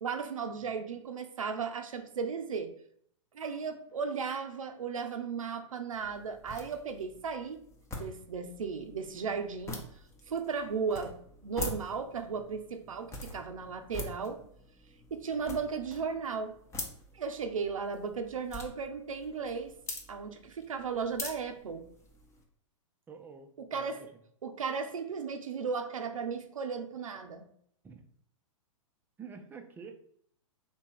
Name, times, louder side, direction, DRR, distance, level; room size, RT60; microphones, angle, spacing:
voice 1, 0.0-2.7 3.3-7.6 7.9-9.8 10.3-11.2 11.4-14.4 15.1-16.5 17.1-19.8 20.1-21.8 23.6-24.0 24.4-27.5, right 5 dB, 85° right, 6 dB, 0.6 m, -35 dB
sound 1, 5.9-22.4, left 2 dB, 15° left, 0.8 m, -45 dB
voice 2, 23.1-24.1 27.8-28.0 29.2-30.0, right 6 dB, 10° right, 5 dB, 0.5 m, -48 dB
3.4 x 2.9 x 4.5 m, 0.66 s
hypercardioid pair, 120°, 17 cm